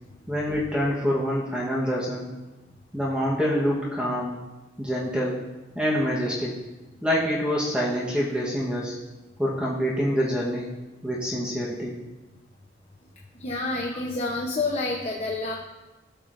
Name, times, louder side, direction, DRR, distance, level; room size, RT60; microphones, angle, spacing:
voice 1, 0.3-2.3 2.9-4.4 4.8-5.4 5.7-6.6 7.0-9.0 9.4-10.7 11.0-12.0 13.9-14.0, equal, 5° right, -5 dB, 1.1 m, -26 dB
voice 2, 13.4-15.5, left 2 dB, 35° left, -2 dB, 0.8 m, -28 dB
16.5 x 6.7 x 2.6 m, 1.1 s
head